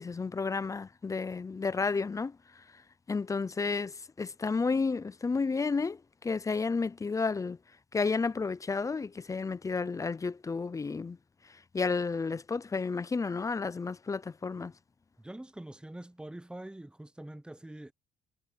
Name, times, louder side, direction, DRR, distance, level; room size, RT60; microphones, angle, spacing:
voice 1, 0.0-2.4 3.1-7.6 7.9-11.2 11.7-14.7, left 4 dB, 20° left, 0.5 m, -31 dB
voice 2, 15.2-17.9, right 1 dB, 5° right, 0.9 m, -44 dB
cardioid pair, 110°, 17 cm